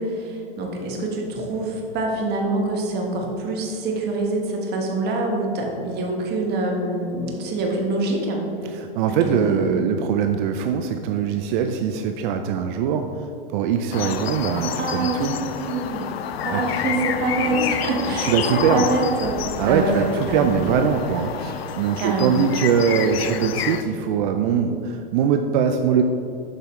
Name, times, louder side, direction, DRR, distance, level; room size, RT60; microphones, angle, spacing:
voice 1, 0.0-8.7 9.1-9.8 14.7-16.0 16.4-20.7 22.0-22.4, right 2 dB, 35° right, 0 dB, 1.2 m, -25 dB
voice 2, 8.9-13.1 13.5-15.3 16.5-16.6 18.0-18.9 19.6-26.0, right 7 dB, 55° right, 6 dB, 0.4 m, -22 dB
sound 1, 13.9-23.8, left 8 dB, 80° left, 0.5 m, -29 dB
sound 2, 17.2-24.2, left 1 dB, 30° left, 1.5 m, -43 dB
7.4 x 5.5 x 3.0 m, 2.7 s
hypercardioid pair, 115°, 30 cm